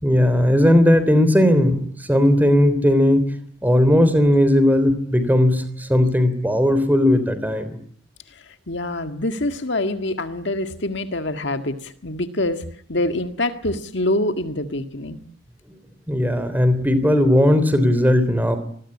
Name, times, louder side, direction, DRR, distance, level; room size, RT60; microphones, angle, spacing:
voice 1, 0.0-3.3 3.6-7.8 16.1-18.6, left 1 dB, 10° right, 12 dB, 3.4 m, -17 dB
voice 2, 8.3-15.2, left 1 dB, 55° left, 8 dB, 1.9 m, -25 dB
28.5 x 21.0 x 9.8 m, 0.62 s
head